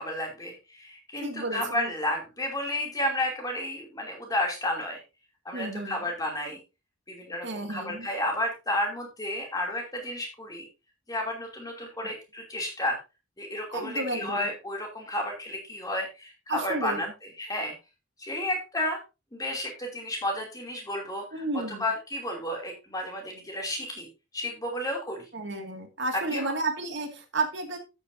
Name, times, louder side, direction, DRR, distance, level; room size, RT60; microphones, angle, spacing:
voice 1, 0.0-5.0 5.4-6.6 7.1-10.7 11.1-13.0 13.4-17.1 17.4-17.7 18.2-19.0 19.3-24.1 24.3-25.3 26.1-26.5, left 1 dB, 15° left, 1 dB, 2.9 m, -32 dB
voice 2, 1.2-1.9 5.5-6.0 7.4-8.1 13.7-14.5 16.5-17.0 21.3-21.9 25.3-27.8, right 2 dB, 55° right, 4 dB, 2.2 m, -32 dB
12.5 x 8.9 x 2.7 m, 0.28 s
head